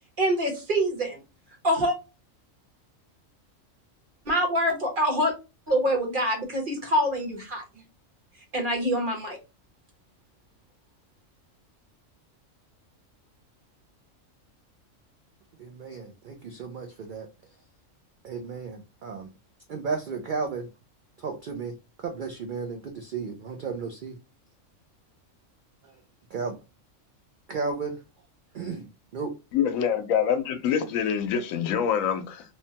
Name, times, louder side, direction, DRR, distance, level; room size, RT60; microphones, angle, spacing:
voice 1, 0.2-1.2 1.6-2.0 4.3-5.3 5.7-7.6 8.5-9.4, equal, 45° right, 1.0 m, -25 dB
voice 2, 15.6-17.3 18.2-19.3 19.7-20.7 21.2-21.8 22.0-24.2 26.3-26.6 27.5-28.0 28.5-28.9 29.1-29.3, right 4 dB, 70° right, 0.4 m, -33 dB
voice 3, 29.5-32.4, left 8 dB, 85° left, 1.0 m, -25 dB
3.1 x 2.1 x 2.7 m
omnidirectional pair, 1.4 m